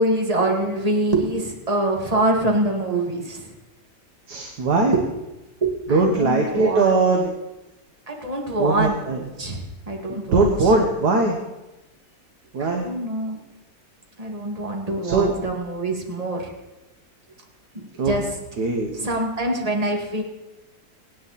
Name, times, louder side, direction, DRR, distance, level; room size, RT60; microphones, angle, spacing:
voice 1, 0.0-3.5 4.9-5.0 5.6-6.9 8.1-9.0 9.4-10.7 12.6-13.4 14.2-16.5 17.7-18.3 18.9-20.2, right 2 dB, 20° right, 1 dB, 2.2 m, -24 dB
voice 2, 4.3-4.9 5.9-7.3 8.6-9.2 10.1-11.4 12.5-12.9 15.0-15.3 18.0-18.1 18.6-18.9, right 3 dB, 70° right, 2 dB, 1.9 m, -20 dB
25.0 x 9.5 x 4.2 m, 1.0 s
omnidirectional pair, 1.8 m